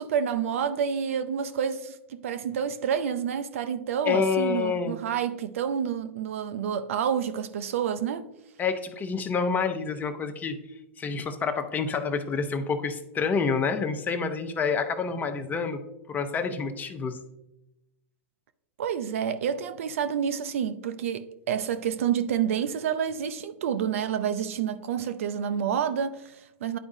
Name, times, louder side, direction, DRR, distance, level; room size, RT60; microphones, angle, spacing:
voice 1, 0.0-8.3 18.8-26.8, right 8 dB, 75° right, 0.5 m, -29 dB
voice 2, 4.1-5.0 8.6-10.6 11.0-15.8 16.1-17.2, left 5 dB, 25° left, 0.7 m, -28 dB
10.0 x 4.8 x 2.7 m
hypercardioid pair, 105°, 7 cm